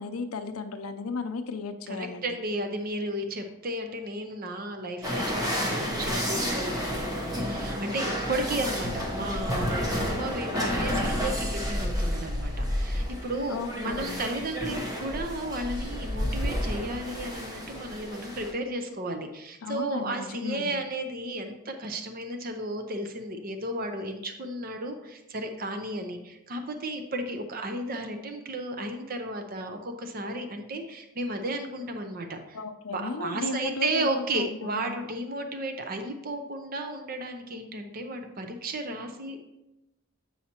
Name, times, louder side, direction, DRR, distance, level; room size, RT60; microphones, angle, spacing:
voice 1, 0.0-2.3 10.5-11.1 13.5-14.2 19.6-20.7 32.5-34.9, left 4 dB, 80° left, 8 dB, 0.6 m, -35 dB
voice 2, 1.9-32.6 32.9-39.4, right 1 dB, 40° right, 6 dB, 0.6 m, -34 dB
sound 1, 5.0-18.5, equal, 15° right, 0.9 m, -30 dB
8.4 x 5.6 x 2.9 m, 0.94 s
head